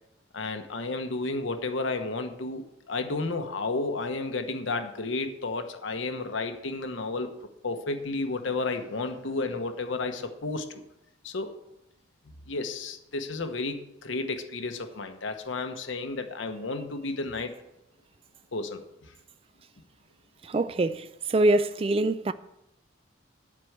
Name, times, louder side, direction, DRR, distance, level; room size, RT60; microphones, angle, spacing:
voice 1, 0.3-7.3 7.6-10.7 11.2-11.6 12.5-17.5 18.5-19.1, left 3 dB, 80° left, 1.0 m, -32 dB
voice 2, 20.4-22.3, right 2 dB, 30° right, 0.3 m, -24 dB
11.0 x 4.7 x 7.9 m
head